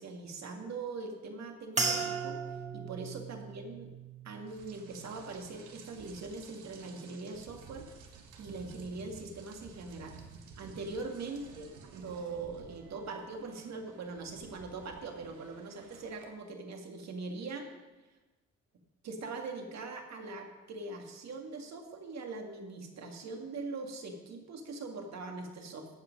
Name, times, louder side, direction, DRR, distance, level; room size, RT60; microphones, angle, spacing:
voice 1, 0.0-2.4 2.7-3.9 4.2-7.9 8.4-10.2 10.6-17.7 19.0-25.9, right 3 dB, 60° right, 3 dB, 2.1 m, -42 dB
sound 1, 1.8-6.3 6.6-7.3 7.9-8.1, right 4 dB, 25° right, 1.7 m, -38 dB
Rain, 4.5-16.2, right 5 dB, 80° right, 1.5 m, -54 dB
17.0 x 5.9 x 5.3 m, 1.2 s
cardioid pair, 90°, 30 cm